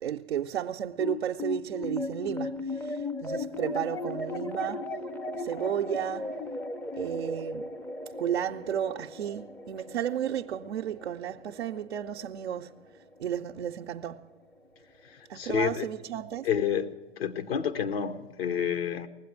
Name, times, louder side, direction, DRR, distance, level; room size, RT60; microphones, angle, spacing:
voice 1, 0.0-4.9 5.4-6.4 6.9-7.7 8.2-12.7 13.2-14.3 15.3-16.5, right 10 dB, 85° right, 0.5 m, -33 dB
sound 1, 1.0-13.6, left 2 dB, 5° left, 0.4 m, -37 dB
voice 2, 15.3-15.9 16.4-19.1, left 8 dB, 70° left, 1.0 m, -29 dB
19.0 x 7.8 x 9.2 m
hypercardioid pair, 100°, 32 cm